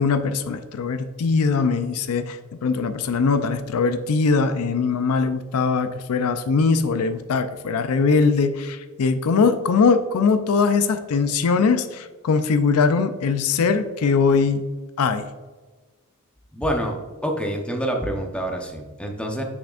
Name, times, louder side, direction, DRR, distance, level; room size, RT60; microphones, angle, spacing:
voice 1, 0.0-14.6 15.0-15.3, left 5 dB, 75° left, 10 dB, 0.4 m, -21 dB
voice 2, 16.5-17.0 17.2-19.4, equal, 5° left, 2 dB, 0.8 m, -26 dB
6.8 x 6.2 x 2.4 m, 1.3 s
head